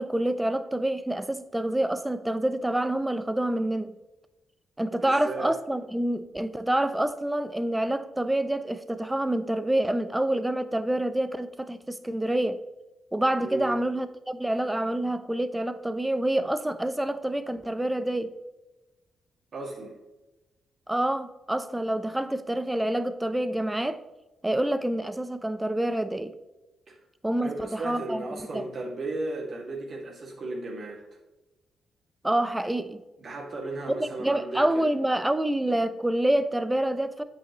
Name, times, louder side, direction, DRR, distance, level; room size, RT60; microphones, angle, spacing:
voice 1, 0.0-3.9 4.8-12.6 13.1-18.3 20.9-24.0 24.4-26.3 27.2-28.2 28.5-28.6 32.2-33.0 34.0-37.2, right 1 dB, 10° right, 0.7 m, -27 dB
voice 2, 5.0-5.5 13.4-13.8 19.5-19.9 26.9-27.0 27.4-31.0 33.2-34.9, right 2 dB, 55° right, 2.2 m, -35 dB
8.2 x 5.6 x 3.0 m
hypercardioid pair, 50°, 0 cm